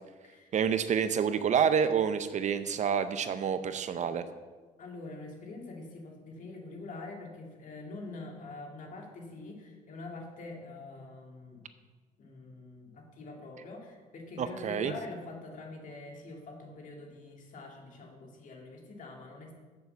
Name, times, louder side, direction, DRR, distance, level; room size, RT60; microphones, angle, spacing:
voice 1, 0.5-4.2 14.4-14.9, right 7 dB, 45° right, 11 dB, 0.6 m, -28 dB
voice 2, 4.8-11.6 12.2-19.5, left 3 dB, 50° left, 1 dB, 2.3 m, -45 dB
8.0 x 6.9 x 6.9 m, 1.4 s
cardioid pair, 110°, 17 cm